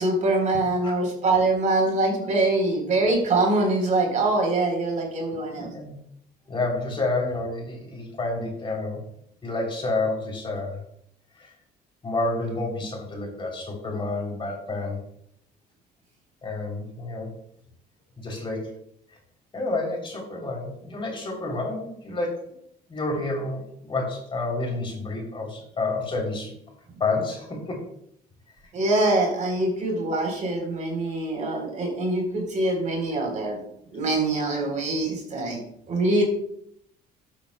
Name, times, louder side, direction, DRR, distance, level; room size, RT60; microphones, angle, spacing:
voice 1, 0.0-5.7 28.7-33.6 33.9-35.6 35.9-36.2, right 2 dB, 45° right, 1 dB, 3.8 m, -24 dB
voice 2, 5.6-6.0 6.5-9.0 9.4-10.8 11.4-11.5 12.0-15.0 16.4-17.3 18.2-18.8 19.5-22.5 22.9-26.5 27.0-27.8, left 2 dB, 30° left, 0 dB, 3.3 m, -29 dB
13.0 x 8.6 x 2.3 m, 0.69 s
cardioid pair, 110°, 17 cm